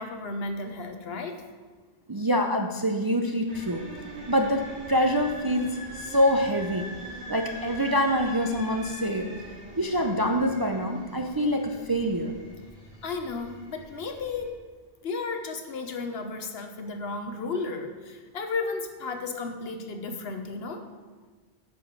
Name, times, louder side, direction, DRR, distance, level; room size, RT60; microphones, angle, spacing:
voice 1, 0.0-1.4 13.0-14.5 15.0-20.8, left 3 dB, 70° left, 6 dB, 1.1 m, -33 dB
voice 2, 2.1-3.8 4.3-6.8 7.3-9.3 9.8-12.3, equal, 30° right, 3 dB, 0.4 m, -25 dB
sound 1, 3.5-14.5, right 1 dB, 55° right, 2.6 m, -42 dB
9.1 x 5.0 x 6.7 m, 1.4 s
omnidirectional pair, 1.1 m